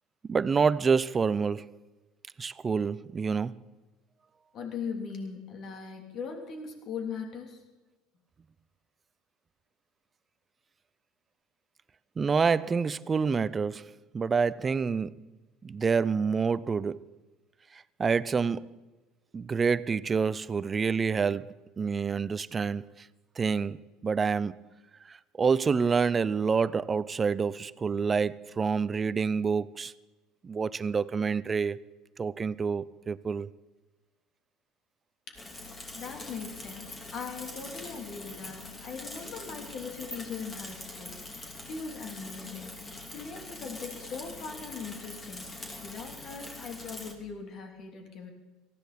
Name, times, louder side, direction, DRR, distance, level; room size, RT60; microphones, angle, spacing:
voice 1, 0.3-1.7 2.4-3.6 12.2-15.2 15.6-17.1 18.0-18.7 19.3-21.5 21.8-22.9 23.4-23.8 24.0-24.5 25.4-29.9 30.4-31.8 32.2-33.5, right 5 dB, 30° right, 0.5 m, -27 dB
voice 2, 4.5-7.6 35.3-35.4 35.9-41.1 41.7-42.7 43.1-45.5 45.8-48.3, left 5 dB, 50° left, 3.2 m, -40 dB
Bicycle / Mechanisms, 35.3-47.1, left 2 dB, 25° left, 3.0 m, -43 dB
18.5 x 15.0 x 4.3 m
hypercardioid pair, 80°, 0 cm